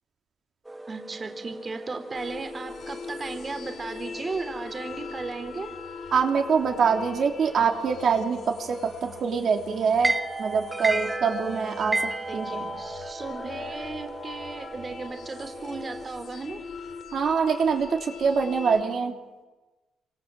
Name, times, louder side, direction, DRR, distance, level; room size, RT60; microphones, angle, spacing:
sound 1, 0.7-16.1, right 2 dB, 10° right, 1.4 m, -36 dB
voice 1, 0.9-5.8 12.3-16.6, right 3 dB, 30° right, 6 dB, 3.3 m, -36 dB
sound 2, 2.1-18.8, left 5 dB, 55° left, 2.8 m, -42 dB
voice 2, 6.1-10.1 10.4-12.7 17.1-19.2, right 6 dB, 55° right, 2 dB, 3.3 m, -24 dB
29.0 x 26.5 x 7.7 m, 1.2 s
cardioid pair, 140°, 0 cm